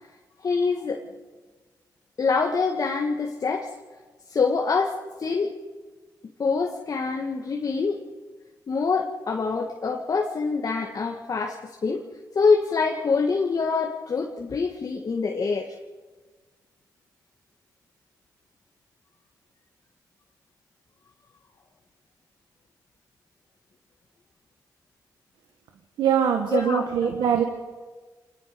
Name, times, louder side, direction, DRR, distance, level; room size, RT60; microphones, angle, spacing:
voice 1, 0.4-1.0 2.2-3.7 4.3-5.6 6.4-8.0 8.7-12.1 12.4-15.8 26.5-27.3, left 4 dB, 50° left, 1 dB, 1.8 m, -25 dB
voice 2, 26.0-27.4, right 8 dB, 85° right, 5 dB, 1.6 m, -22 dB
26.5 x 20.0 x 5.2 m, 1.4 s
cardioid pair, 60°, 8 cm